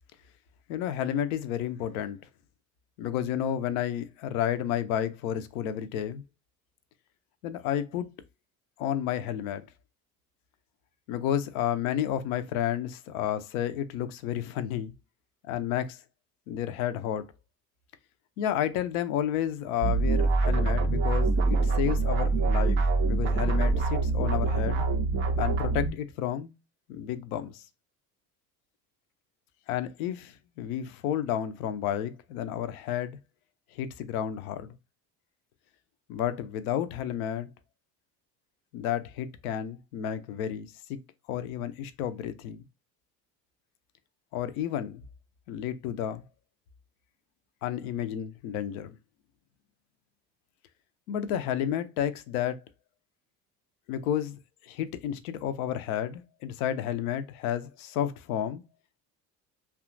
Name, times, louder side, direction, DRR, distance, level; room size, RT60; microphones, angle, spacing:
voice 1, 0.7-2.2 3.0-6.2 7.4-8.1 8.8-9.7 11.1-14.9 15.5-16.0 16.5-17.3 18.4-24.9 25.4-26.5 26.9-27.6 29.7-33.2 33.7-34.7 36.1-37.5 38.7-41.0 41.3-42.6 44.3-45.0 45.5-46.2 47.6-49.0 51.1-52.6 53.9-58.6, left 10 dB, 60° left, 0.5 m, -31 dB
sound 1, 19.8-25.9, right 3 dB, 30° right, 0.3 m, -25 dB
2.7 x 2.3 x 2.5 m
figure-of-eight pair, 60°, 50 cm